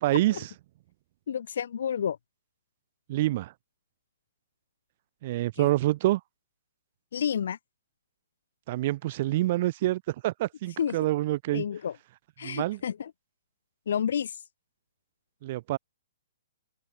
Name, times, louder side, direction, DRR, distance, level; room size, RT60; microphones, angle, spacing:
voice 1, 0.0-0.5 3.1-3.5 5.2-6.2 8.7-11.6 12.4-12.8 15.4-15.8, right 16 dB, 45° right, 1.1 m, -27 dB
voice 2, 1.3-2.2 5.6-5.7 7.1-7.6 10.8-11.0 11.5-11.9 12.4-13.1 13.9-14.3, left 8 dB, 70° left, 1.6 m, -30 dB
open air
hypercardioid pair, 145°, 0 cm